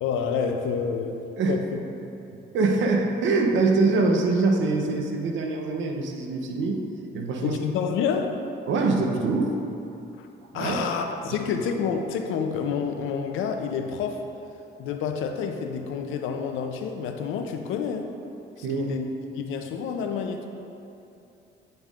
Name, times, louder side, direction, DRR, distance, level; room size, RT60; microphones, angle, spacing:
voice 1, 0.0-1.2 1.5-1.8 7.4-8.4 10.2-10.3 10.5-14.2 14.8-18.1 18.6-19.1 19.4-20.5, left 6 dB, 90° left, 5 dB, 0.5 m, -28 dB
voice 2, 2.5-6.8 7.1-7.6 8.7-9.6 10.5-10.9 11.3-11.4 18.6-18.9, right 3 dB, 75° right, 2 dB, 0.7 m, -24 dB
8.9 x 5.3 x 2.4 m, 2.8 s
cardioid pair, 90°, 20 cm